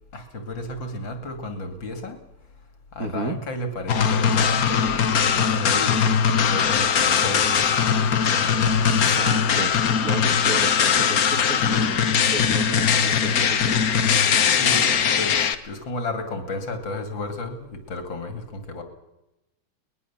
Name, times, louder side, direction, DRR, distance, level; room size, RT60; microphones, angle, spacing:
voice 1, 0.1-2.2 2.9-6.0 6.5-8.7 9.0-9.1 12.3-12.6 14.5-18.8, left 2 dB, 80° left, 7 dB, 3.2 m, -33 dB
voice 2, 3.0-3.4 5.5-5.6 8.9-13.8, right 4 dB, 50° right, 9 dB, 1.7 m, -33 dB
sound 1, 3.9-15.5, left 7 dB, 55° left, 1.4 m, -20 dB
22.5 x 20.5 x 7.3 m, 0.92 s
omnidirectional pair, 2.1 m